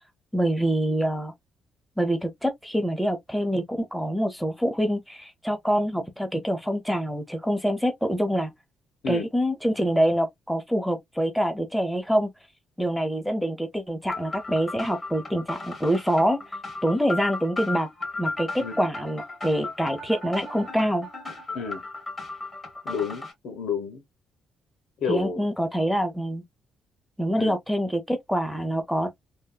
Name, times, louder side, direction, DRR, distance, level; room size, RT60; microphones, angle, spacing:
voice 1, 0.3-1.3 2.0-8.5 9.1-12.3 12.8-16.6 16.8-17.9 18.2-21.1 25.1-26.4 27.2-29.1, equal, ahead, 0.7 m, -25 dB
sound 1, 14.1-23.3, left 2 dB, 25° left, 1.9 m, -36 dB
voice 2, 22.8-24.0 25.0-25.5 27.4-27.6, left 6 dB, 75° left, 0.8 m, -30 dB
3.4 x 2.2 x 2.2 m
cardioid pair, 90°, 0 cm